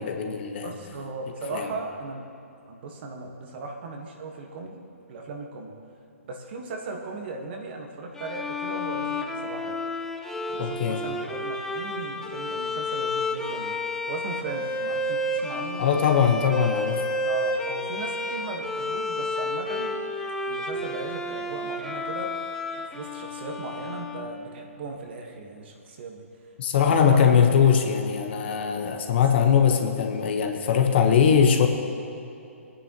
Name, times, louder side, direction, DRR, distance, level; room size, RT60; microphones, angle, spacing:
voice 1, 0.0-0.7 1.5-1.7 10.6-11.0 15.8-17.0 26.6-31.7, left 7 dB, 50° left, 5 dB, 1.2 m, -21 dB
voice 2, 0.6-2.2 2.7-4.8 5.1-5.7 6.2-9.8 10.5-13.8 14.1-16.2 17.2-20.0 20.5-22.3 22.8-26.3 26.8-27.4 30.7-30.8, right 3 dB, 45° right, 2 dB, 1.5 m, -37 dB
Bowed string instrument, 8.2-24.7, left 1 dB, 5° left, 0.6 m, -31 dB
19.5 x 9.7 x 3.0 m, 2.7 s
figure-of-eight pair, 135°, 8 cm